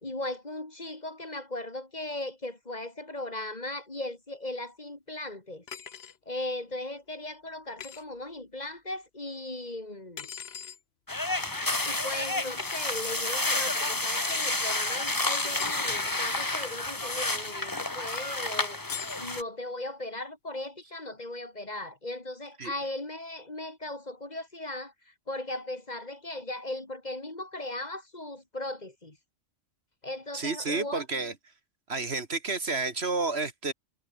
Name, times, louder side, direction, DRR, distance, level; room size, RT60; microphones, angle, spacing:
voice 1, 0.0-5.6 6.3-10.3 11.9-18.8 19.2-29.2 30.0-31.0, left 1 dB, 35° left, 2.8 m, -37 dB
sound 1, 5.7-6.2 7.8-8.0 10.2-10.8 12.6-12.8 15.4-16.0 18.9-19.3, left 8 dB, 55° left, 1.2 m, -41 dB
sound 2, 11.1-19.4, left 2 dB, 15° left, 1.4 m, -30 dB
voice 2, 30.3-31.3 31.9-33.7, right 3 dB, 55° right, 2.3 m, -30 dB
omnidirectional pair, 1.3 m